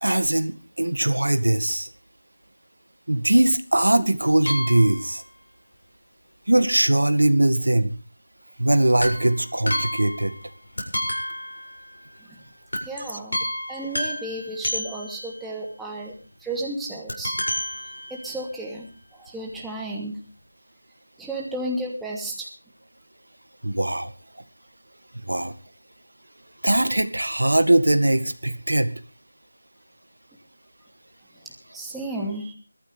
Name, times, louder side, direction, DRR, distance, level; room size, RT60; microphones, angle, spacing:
voice 1, 0.0-1.9 3.1-5.2 6.5-8.0 8.6-10.3 13.1-13.2 23.6-24.1 25.3-25.5 26.6-28.9, right 1 dB, 85° right, 11 dB, 1.9 m, -21 dB
sound 1, 4.4-5.2 9.0-10.5 10.8-12.3 12.7-13.0 13.3-15.3 17.1-18.5 19.3-19.4 19.5-19.6, equal, 80° left, 7.5 m, -30 dB
voice 2, 12.8-13.4 13.7-16.1 16.4-17.3 18.1-20.1 21.2-22.5 31.7-32.5, right 1 dB, 5° right, -3 dB, 2.7 m, -32 dB
22.0 x 14.0 x 3.5 m, 0.35 s
figure-of-eight pair, 170°, 0 cm